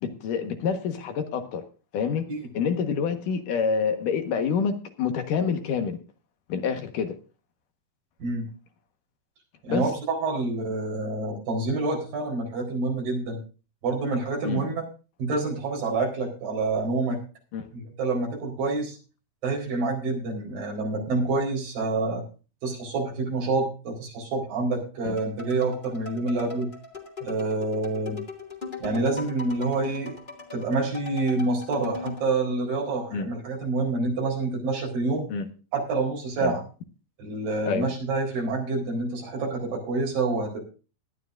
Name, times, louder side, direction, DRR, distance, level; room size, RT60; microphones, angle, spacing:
voice 1, 0.0-1.6 1.9-2.3 2.5-6.0 6.5-7.1 9.7-9.8 14.4-14.6 17.5-17.7 25.1-25.2 33.1-33.3 35.3-35.4 36.4-36.5 37.7-37.9, left 6 dB, 70° left, 7 dB, 3.0 m, -27 dB
voice 2, 9.6-13.4 13.8-14.8 15.2-17.2 17.7-19.0 19.4-22.2 22.6-26.7 27.2-28.2 28.8-30.2 30.5-35.3 35.7-36.6 37.2-40.7, right 3 dB, 80° right, 0 dB, 6.0 m, -27 dB
sound 1, 25.2-32.3, left 4 dB, 15° left, 1.9 m, -40 dB
19.0 x 12.0 x 2.6 m, 0.34 s
omnidirectional pair, 3.9 m